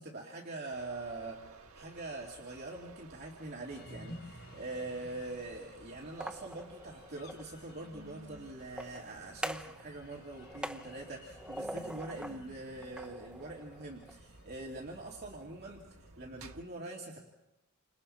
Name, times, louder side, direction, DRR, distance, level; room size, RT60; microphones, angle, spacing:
voice 1, 0.0-1.5 1.7-17.2, right 2 dB, 45° right, -2 dB, 2.8 m, -44 dB
sound 1, 0.7-16.6, right 3 dB, 75° right, 1.4 m, -57 dB
sound 2, 3.7-15.1, left 1 dB, 70° left, 5.3 m, -54 dB
sound 3, 6.0-7.5 8.6-9.8 10.1-12.4 12.8-14.2, right 1 dB, 5° right, 0.8 m, -43 dB
29.5 x 26.5 x 4.4 m, 0.92 s
head